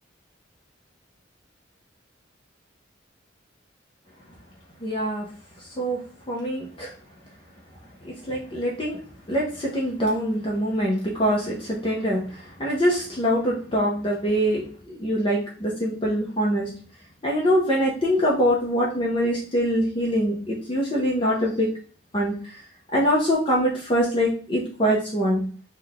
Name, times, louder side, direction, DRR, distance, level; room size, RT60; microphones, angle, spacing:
voice 1, 4.8-5.2 5.8-6.0 6.3-6.9 8.0-9.0 9.3-16.7 17.2-21.7 22.1-22.3 22.9-25.4, equal, 25° left, -4 dB, 0.6 m, -24 dB
3.2 x 2.2 x 3.8 m, 0.42 s
head